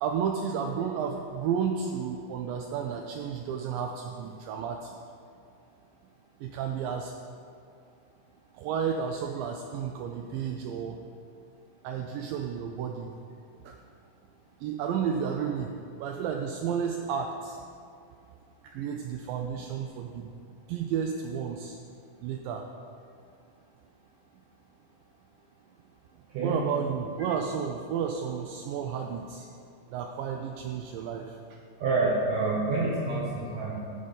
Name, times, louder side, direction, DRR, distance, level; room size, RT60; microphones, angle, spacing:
voice 1, 0.0-5.0 6.4-7.1 8.5-11.0 11.8-13.1 13.6-13.8 14.6-15.7 16.0-17.6 18.6-20.3 20.7-21.8 22.2-22.6 26.4-29.5 29.9-31.6, right 7 dB, 90° right, 3 dB, 1.9 m, -32 dB
voice 2, 26.3-26.6 31.8-33.8, right 3 dB, 70° right, -6 dB, 2.2 m, -27 dB
13.5 x 5.1 x 4.0 m, 2.4 s
omnidirectional pair, 4.5 m